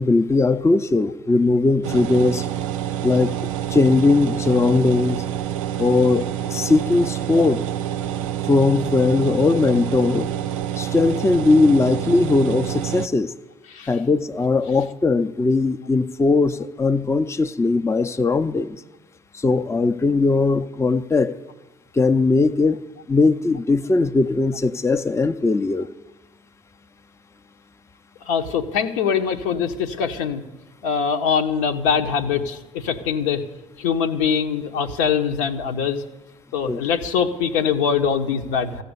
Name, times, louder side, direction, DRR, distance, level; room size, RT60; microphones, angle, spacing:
voice 1, 0.0-2.5 3.0-3.4 3.7-5.2 5.8-7.6 8.5-10.3 10.8-13.3 13.9-18.8 19.3-21.4 21.9-25.9 36.6-36.8, left 3 dB, 15° left, 9 dB, 0.6 m, -19 dB
sound 1, 1.8-13.1, right 11 dB, 80° right, 0.4 m, -27 dB
voice 2, 28.3-30.4 30.8-33.4 33.8-36.0 36.5-38.8, left 7 dB, 75° left, 5 dB, 1.1 m, -23 dB
14.5 x 6.8 x 9.6 m, 1.2 s
hypercardioid pair, 55°, 17 cm